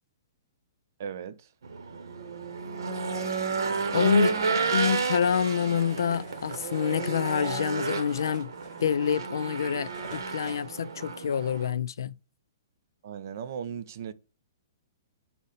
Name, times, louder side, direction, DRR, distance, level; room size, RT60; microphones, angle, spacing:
voice 1, 1.0-1.5 4.1-4.6 13.0-14.1, right 8 dB, 50° right, 0.4 m, -37 dB
Race car auto racing / Engine, 1.6-11.7, right 4 dB, 85° right, 0.8 m, -31 dB
sound 1, 2.8-5.1 5.3-7.8, left 2 dB, 30° left, 0.9 m, -47 dB
sound 2, 3.3-10.7, right 2 dB, 20° right, 2.5 m, -51 dB
voice 2, 3.9-4.3 4.7-8.5 8.8-12.1, left 7 dB, 80° left, 0.3 m, -27 dB
5.1 x 2.1 x 4.0 m
hypercardioid pair, 165°, 2 cm